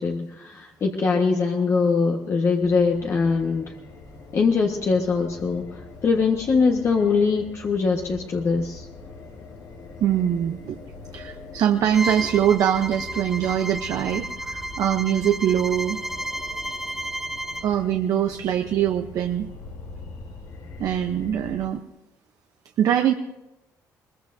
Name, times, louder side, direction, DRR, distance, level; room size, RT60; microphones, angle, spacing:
voice 1, 0.0-3.7 4.3-8.9, left 4 dB, 45° left, 1 dB, 1.3 m, -22 dB
sound 1, 2.6-21.7, left 3 dB, 70° left, 2.0 m, -42 dB
voice 2, 10.0-10.8 11.1-16.0 17.6-19.5 20.8-21.8 22.8-23.1, right 10 dB, 70° right, 6 dB, 0.8 m, -23 dB
Bowed string instrument, 11.9-17.7, right 1 dB, 5° right, 1.5 m, -32 dB
21.0 x 20.5 x 2.7 m, 0.98 s
cardioid pair, 105°, 6 cm